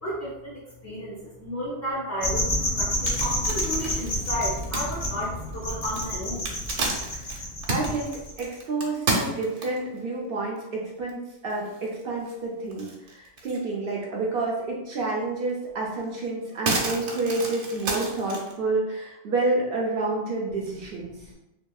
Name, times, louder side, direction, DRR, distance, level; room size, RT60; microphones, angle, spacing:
voice 1, 0.0-6.5 21.2-21.3, equal, 25° left, -8 dB, 0.3 m, -33 dB
sound 1, 2.2-8.4, left 1 dB, 45° left, 1.2 m, -29 dB
sound 2, 2.8-10.0 10.6-10.7 11.1-11.2 11.5-12.3 12.7-13.7 14.0-14.1 15.5-15.6 16.0-18.5, right 2 dB, 85° right, 1.0 m, -31 dB
voice 2, 7.7-8.1 8.4-21.1, right 3 dB, 60° right, -2 dB, 0.7 m, -29 dB
2.8 x 2.7 x 2.3 m, 0.93 s
omnidirectional pair, 1.2 m